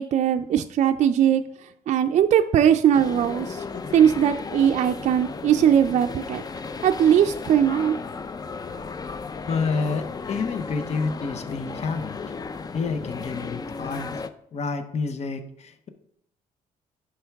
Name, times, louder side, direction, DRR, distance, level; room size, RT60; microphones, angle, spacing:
voice 1, 0.0-1.4 1.9-3.6 3.9-6.4 6.8-8.0 8.7-8.8, right 9 dB, 50° right, 7 dB, 0.4 m, -20 dB
sound 1, 2.9-14.3, left 4 dB, 25° left, 0.4 m, -35 dB
voice 2, 9.5-12.2 12.7-14.1 14.5-15.9, left 4 dB, 45° left, 9 dB, 0.8 m, -29 dB
10.5 x 4.5 x 3.5 m, 0.73 s
cardioid pair, 95°, 15 cm